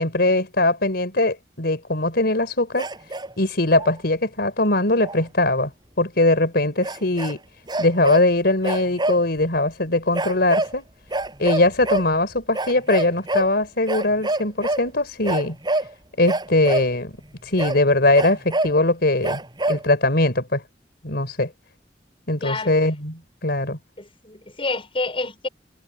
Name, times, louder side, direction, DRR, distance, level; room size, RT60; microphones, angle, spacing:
voice 1, 0.0-2.9 3.4-5.7 6.0-7.4 7.8-10.9 11.4-15.6 16.2-17.1 17.4-19.4 19.7-20.6 21.0-21.5 22.3-23.8, left 2 dB, 65° left, 4.4 m, -21 dB
sound 1, 2.8-3.3 3.7-4.0 5.0-5.2 6.8-7.3 7.7-8.3 8.6-9.3 10.1-10.8 11.1-12.1 12.5-13.5 13.9-14.9 15.2-15.9 16.3-16.9 17.6-17.8 18.1-18.8 19.2-19.9, right 2 dB, 25° right, 6.9 m, -26 dB
voice 2, 22.4-22.7 24.0-25.5, left 3 dB, 30° left, 5.8 m, -28 dB
head